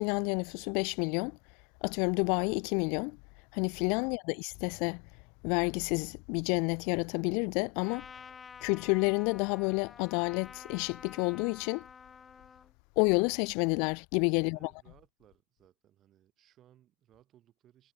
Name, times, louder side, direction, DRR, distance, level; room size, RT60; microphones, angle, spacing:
voice 1, 0.0-1.4 1.8-3.2 3.5-5.0 5.4-8.1 8.6-11.9 13.0-14.7, left 34 dB, 45° left, 0.4 m, -29 dB
Trumpet, 7.8-12.7, left 6 dB, 20° left, 2.3 m, -50 dB
voice 2, 14.4-17.9, right 12 dB, 30° right, 8.0 m, -63 dB
figure-of-eight pair, 90°, 0 cm